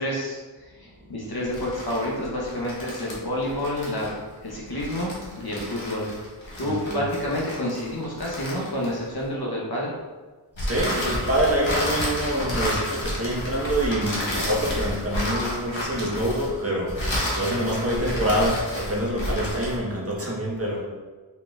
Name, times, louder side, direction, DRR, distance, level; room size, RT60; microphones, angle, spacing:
voice 1, 0.0-4.1 4.4-5.1 5.4-6.1 6.6-9.9, left 1 dB, 55° left, -4 dB, 1.0 m, -29 dB
sound 1, 1.4-9.2 10.6-19.8, left 1 dB, 85° left, 1.1 m, -31 dB
voice 2, 6.6-7.0 10.6-20.8, right 1 dB, 30° right, -4 dB, 1.0 m, -26 dB
4.0 x 3.8 x 2.4 m, 1.4 s
wide cardioid pair, 50°, 45 cm